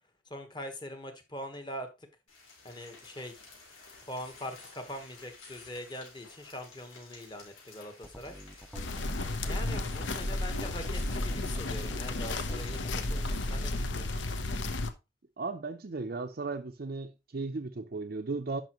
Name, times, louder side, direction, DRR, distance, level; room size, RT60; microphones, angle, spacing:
voice 1, 0.3-1.9 2.6-3.4 4.1-8.3 9.5-14.2, left 1 dB, 20° left, 1.2 m, -42 dB
sound 1, 2.3-13.4, left 3 dB, 90° left, 3.9 m, -53 dB
sound 2, 8.0-13.1, equal, ahead, 0.5 m, -48 dB
sound 3, 8.7-14.9, left 2 dB, 65° left, 0.8 m, -33 dB
voice 2, 15.4-18.6, right 3 dB, 50° right, 0.5 m, -36 dB
10.5 x 5.6 x 3.0 m
head